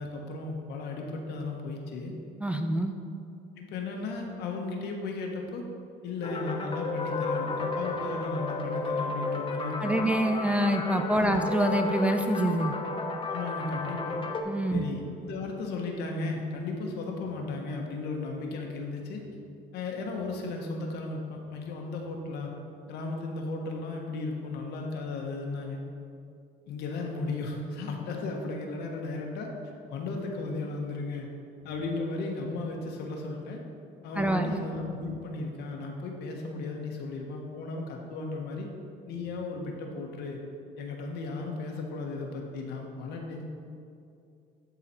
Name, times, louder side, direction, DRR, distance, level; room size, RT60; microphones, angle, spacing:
voice 1, 0.0-2.1 3.6-5.6 6.0-10.0 11.2-11.4 13.2-14.2 14.7-19.2 19.7-22.5 22.9-25.8 26.7-29.5 29.9-31.3 31.6-33.6 34.0-38.7 39.1-40.4 40.8-43.4, left 3 dB, 80° left, 1 dB, 1.2 m, -35 dB
voice 2, 2.4-2.9 9.8-12.7 14.4-14.8 34.2-34.5, right 1 dB, 5° right, 5 dB, 0.5 m, -26 dB
sound 1, 6.2-14.4, left 3 dB, 30° left, 0.8 m, -33 dB
11.5 x 4.1 x 4.4 m, 2.5 s
cardioid pair, 110°, 17 cm